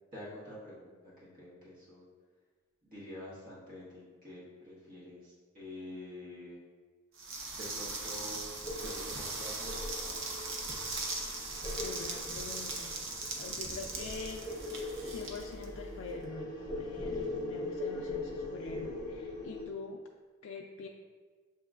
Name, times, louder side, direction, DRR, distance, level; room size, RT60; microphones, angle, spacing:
voice 1, 0.1-2.0 2.8-6.6 7.6-8.5 8.8-10.3, left 1 dB, 45° right, -8 dB, 1.2 m, -47 dB
sound 1, 7.2-16.2, right 3 dB, 80° right, 0.7 m, -40 dB
sound 2, 8.6-19.6, left 2 dB, 20° left, 0.8 m, -41 dB
voice 2, 11.8-13.0 13.4-14.4 15.0-20.0 20.4-20.9, left 4 dB, 90° left, 1 dB, 0.3 m, -45 dB
7.3 x 2.9 x 2.4 m, 1.5 s
head